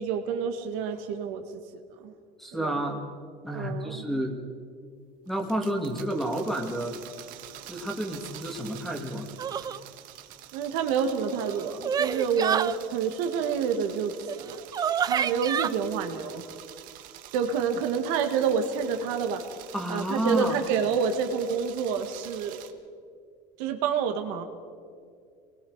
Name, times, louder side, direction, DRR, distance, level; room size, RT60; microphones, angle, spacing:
voice 1, 0.0-2.1 2.5-2.8 3.5-4.0 10.5-14.1 14.4-14.6 15.0-16.4 17.3-19.4 19.9-22.7 23.6-24.4, right 6 dB, 85° right, 6 dB, 1.9 m, -28 dB
voice 2, 2.4-3.0 3.4-4.4 5.3-6.9 7.7-9.3 19.7-20.6, right 1 dB, ahead, 3 dB, 2.2 m, -30 dB
sound 1, 5.3-22.7, right 12 dB, 60° right, 1.4 m, -47 dB
sound 2, 9.4-9.8 11.2-12.8 14.3-14.4 14.7-15.7, right 8 dB, 25° right, 0.5 m, -28 dB
27.5 x 20.5 x 4.9 m, 2.2 s
cardioid pair, 160°, 16 cm